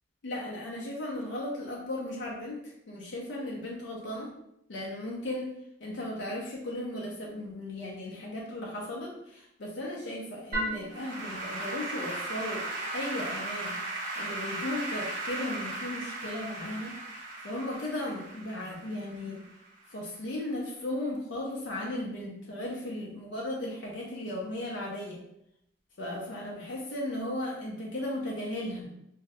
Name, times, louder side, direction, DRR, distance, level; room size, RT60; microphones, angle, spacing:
voice 1, 0.2-4.3 4.7-5.5 5.8-13.7 14.2-17.0 17.4-19.4 19.9-25.2 26.0-28.9, left 1 dB, 80° left, -3 dB, 0.5 m, -36 dB
Applause / Keyboard (musical), 10.5-19.9, right 2 dB, 45° right, 0.8 m, -36 dB
2.6 x 2.5 x 3.2 m, 0.77 s
head